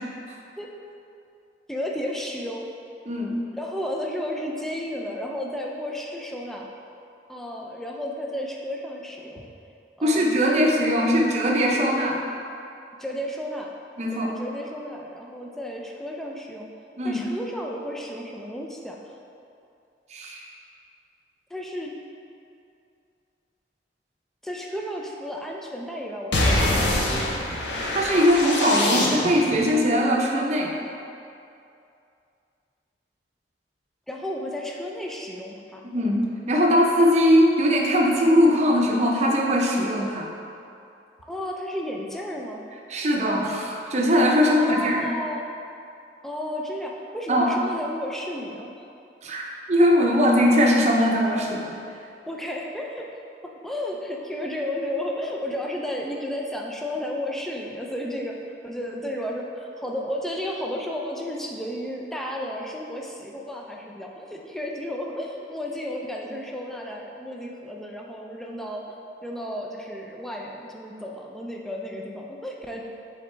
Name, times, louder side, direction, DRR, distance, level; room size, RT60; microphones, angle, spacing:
voice 1, 1.7-2.7 3.5-6.7 7.3-9.4 10.0-10.6 10.9-11.2 13.0-13.7 14.1-16.7 17.0-19.0 21.5-22.0 24.4-27.5 34.1-35.8 41.2-42.7 44.5-45.5 46.2-48.9 52.3-53.1 53.4-58.4 58.6-69.0 69.2-72.8, equal, ahead, -1 dB, 0.4 m, -33 dB
voice 2, 3.1-3.4 10.0-12.2 14.0-14.3 17.0-17.3 20.1-20.5 27.9-30.7 35.9-40.3 42.9-45.1 47.3-47.5 49.2-49.4 49.7-51.7, equal, 40° right, -1 dB, 0.7 m, -20 dB
sound 1, 26.3-29.6, left 1 dB, 85° left, 0.8 m, -24 dB
7.6 x 4.0 x 3.3 m, 2.6 s
head